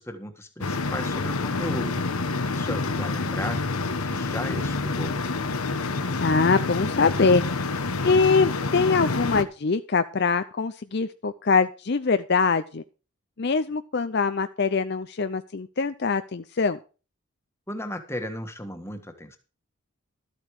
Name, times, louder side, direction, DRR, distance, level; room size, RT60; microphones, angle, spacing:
voice 1, 0.0-5.2 17.7-19.4, left 1 dB, 10° left, 7 dB, 1.5 m, -35 dB
sound 1, 0.6-9.4, left 3 dB, 85° left, 1.1 m, -28 dB
voice 2, 6.2-7.4 8.0-12.8 13.4-16.8, left 4 dB, 50° left, 11 dB, 0.5 m, -23 dB
13.0 x 8.2 x 4.9 m, 0.34 s
head